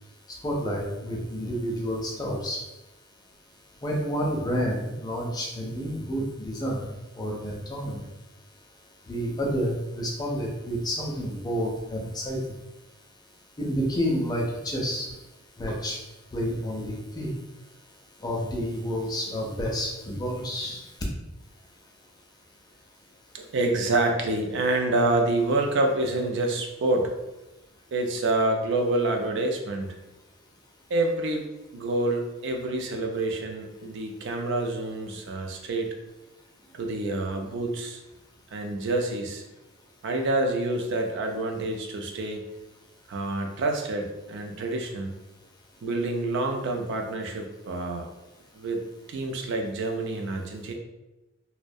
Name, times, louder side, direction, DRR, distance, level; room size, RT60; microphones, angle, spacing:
voice 1, 0.4-2.6 3.8-8.0 9.1-12.4 13.6-15.1 15.6-16.0 16.3-17.3 18.2-20.8, equal, 20° left, -1 dB, 0.4 m, -29 dB
voice 2, 23.3-27.1 27.9-30.0 30.9-35.9 36.7-38.0 38.5-39.4 40.0-42.5 43.1-45.1 45.8-48.1 48.5-48.8 49.1-50.7, right 2 dB, 60° right, 3 dB, 0.4 m, -27 dB
2.2 x 2.1 x 2.6 m, 1.0 s
head